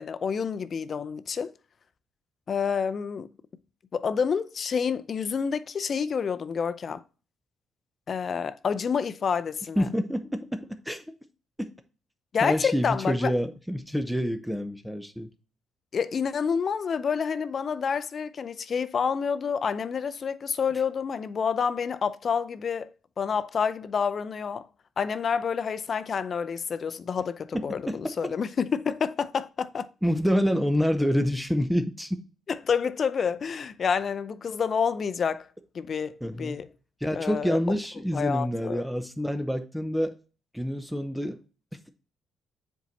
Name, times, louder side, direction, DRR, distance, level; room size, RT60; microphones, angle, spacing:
voice 1, 0.0-1.5 2.5-3.3 3.9-7.0 8.1-9.9 12.3-13.3 15.9-22.9 23.2-24.7 25.0-29.9 32.5-35.5 35.7-36.7 37.1-37.6 38.1-38.9, left 6 dB, 50° left, 0.5 m, -28 dB
voice 2, 9.8-11.0 11.6-11.7 12.4-15.3 27.5-28.0 30.0-32.2 36.2-36.6 37.0-40.1 40.5-41.4, equal, ahead, 0.7 m, -27 dB
7.4 x 4.6 x 4.1 m
cardioid pair, 90°, 0 cm